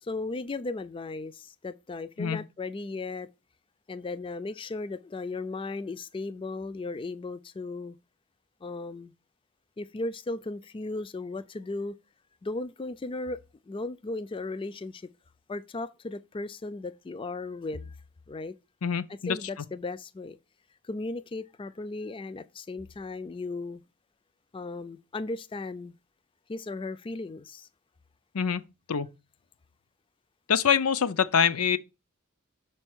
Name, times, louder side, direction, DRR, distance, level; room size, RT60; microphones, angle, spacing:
voice 1, 0.0-3.3 3.9-8.0 8.6-9.1 9.8-11.9 12.4-15.1 15.5-18.0 18.3-18.5 19.3-20.4 20.8-23.8 24.5-26.0 26.5-27.7, left 3 dB, 25° left, 0.4 m, -36 dB
voice 2, 18.8-19.4 28.3-28.6 28.9-29.1 30.5-31.8, left 7 dB, 85° left, 0.6 m, -25 dB
6.3 x 4.5 x 6.1 m
head